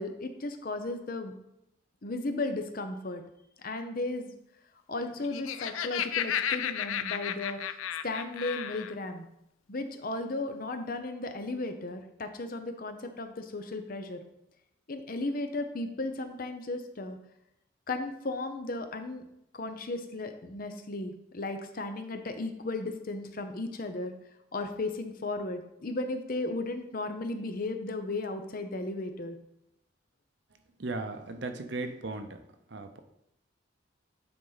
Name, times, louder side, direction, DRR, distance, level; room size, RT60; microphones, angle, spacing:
voice 1, 0.0-1.3 2.0-3.2 3.6-4.3 4.9-7.7 8.0-9.3 9.7-14.2 14.9-17.2 17.9-19.2 19.5-24.1 24.5-29.4, left 2 dB, 45° left, 7 dB, 0.7 m, -35 dB
Laughter, 5.1-8.9, left 9 dB, 80° left, 0.4 m, -33 dB
voice 2, 30.8-32.3 32.7-33.0, right 2 dB, 60° right, 7 dB, 0.7 m, -36 dB
9.4 x 4.1 x 4.0 m, 0.81 s
head